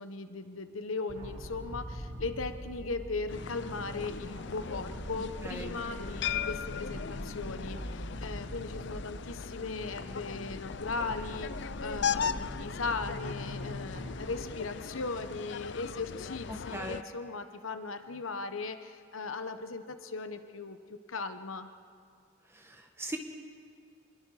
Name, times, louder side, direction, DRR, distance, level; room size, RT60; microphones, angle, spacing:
voice 1, 0.0-21.7, left 3 dB, 90° left, 9 dB, 1.1 m, -38 dB
sound 1, 1.1-14.4, equal, 80° right, 7.5 m, -42 dB
sound 2, 3.3-17.0, left 7 dB, 60° left, 0.5 m, -38 dB
voice 2, 22.6-23.2, right 1 dB, 15° right, 3 dB, 1.7 m, -39 dB
26.5 x 21.5 x 4.9 m, 2.2 s
head